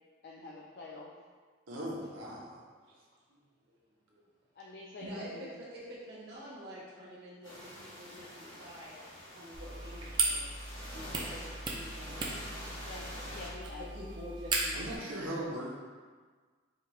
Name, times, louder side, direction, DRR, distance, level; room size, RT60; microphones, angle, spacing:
voice 1, 0.2-1.1 4.5-5.5 12.9-13.9, left 2 dB, 50° left, -3 dB, 0.3 m, -47 dB
voice 2, 1.7-2.6 14.7-15.7, right 1 dB, 80° right, -4 dB, 0.8 m, -38 dB
voice 3, 5.0-9.0 9.3-10.5 10.9-12.7 13.9-15.1 15.4-15.5, equal, 50° right, -7 dB, 1.0 m, -47 dB
sound 1, 7.4-13.5, equal, 85° left, 1.4 m, -47 dB
sound 2, 9.5-15.0, right 3 dB, 20° right, 0.4 m, -36 dB
4.7 x 3.1 x 2.3 m, 1.5 s
head